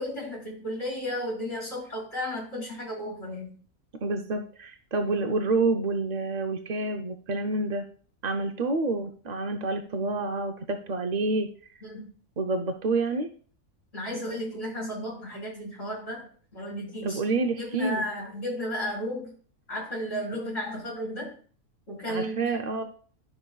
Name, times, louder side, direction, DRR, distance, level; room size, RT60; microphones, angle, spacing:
voice 1, 0.0-3.5 11.8-12.1 13.9-16.3 16.5-17.2 17.6-19.3 19.7-21.3 21.9-22.5, equal, 45° left, -3 dB, 4.4 m, -33 dB
voice 2, 4.0-7.8 8.2-11.5 12.4-13.3 17.0-18.0 22.1-22.8, right 3 dB, 55° right, 5 dB, 0.4 m, -28 dB
11.0 x 6.4 x 2.3 m, 0.43 s
omnidirectional pair, 1.6 m